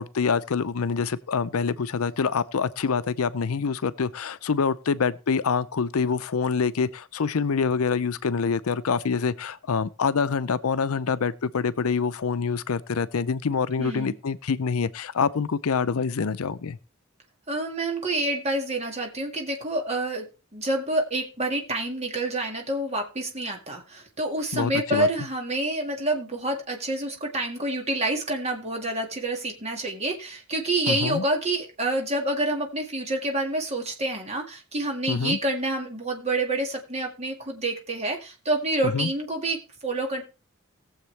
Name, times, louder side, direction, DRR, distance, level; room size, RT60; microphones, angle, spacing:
voice 1, 0.0-16.8 24.5-25.1 30.9-31.2 35.1-35.4 38.9-39.1, left 5 dB, 80° left, 0.5 m, -26 dB
voice 2, 13.8-14.1 17.5-20.3 20.5-40.2, right 2 dB, 30° right, 1.9 m, -28 dB
19.0 x 7.3 x 3.3 m
head